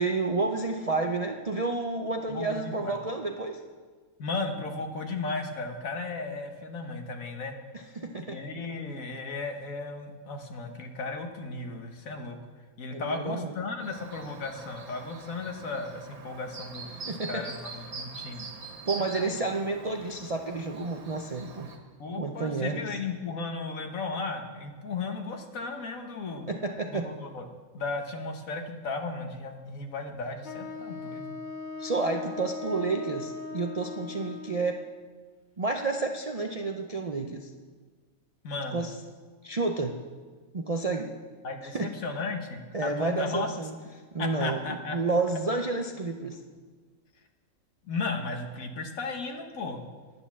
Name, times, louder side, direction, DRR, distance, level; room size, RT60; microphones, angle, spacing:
voice 1, 0.0-3.6 8.0-8.4 12.9-13.5 17.1-17.4 18.9-21.7 22.2-22.9 26.5-27.1 31.8-34.8 35.6-37.5 38.7-38.9 39.4-40.0 40.5-41.1 41.7-41.9 42.7-43.8 44.1-46.4, right 3 dB, 40° right, 3 dB, 0.5 m, -30 dB
voice 2, 2.3-3.0 4.2-7.5 8.2-12.4 12.8-18.5 19.0-19.3 22.0-26.5 26.9-27.5 27.7-31.4 38.4-38.9 41.4-43.5 44.2-45.0 47.8-49.9, left 3 dB, 70° left, 5 dB, 1.6 m, -35 dB
Chirp tweet, 13.8-21.8, right 4 dB, 90° right, 1.9 m, -43 dB
Wind instrument woodwind instrument, 30.4-34.9, left 4 dB, 40° left, 0.8 m, -39 dB
10.5 x 9.5 x 7.2 m, 1.5 s
omnidirectional pair, 1.5 m